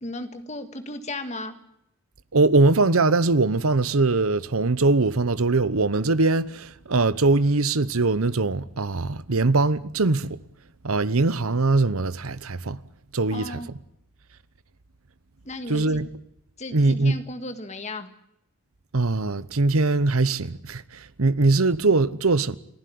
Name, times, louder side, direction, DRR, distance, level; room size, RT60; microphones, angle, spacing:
voice 1, 0.0-1.6 13.3-13.7 15.4-16.0 16.6-18.1, left 2 dB, 30° left, 1.8 m, -35 dB
voice 2, 2.3-10.4 10.8-12.8 13.1-13.6 15.7-16.1 16.7-17.1 18.9-22.6, right 3 dB, 85° right, 1.0 m, -21 dB
30.0 x 11.5 x 9.5 m
head